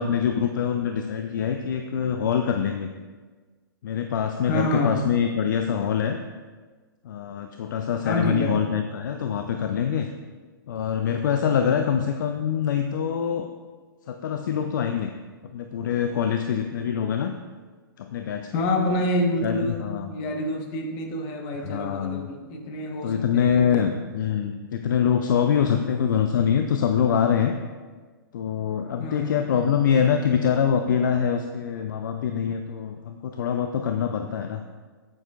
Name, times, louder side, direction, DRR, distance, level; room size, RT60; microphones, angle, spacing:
voice 1, 0.0-2.9 3.8-6.2 7.0-10.1 10.7-13.5 14.1-15.1 15.5-17.3 18.0-18.6 19.4-20.1 21.5-22.3 23.0-27.5 28.3-34.6, left 8 dB, 55° left, 6 dB, 0.5 m, -24 dB
voice 2, 4.5-5.0 8.0-8.6 18.5-23.8 29.0-29.3, left 1 dB, 35° left, 3 dB, 1.3 m, -27 dB
8.8 x 8.7 x 2.5 m, 1.4 s
figure-of-eight pair, 115°, 12 cm